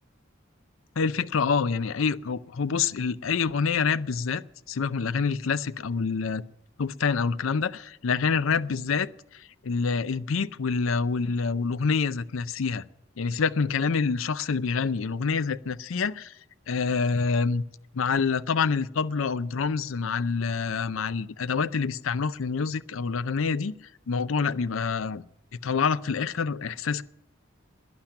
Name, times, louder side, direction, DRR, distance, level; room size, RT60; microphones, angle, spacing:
voice 1, 1.0-4.4 4.7-6.4 6.8-12.8 13.2-16.3 16.7-17.6 17.9-23.8 24.1-25.2 25.6-27.0, left 5 dB, 75° left, 0.5 m, -27 dB
12.0 x 10.0 x 8.9 m
head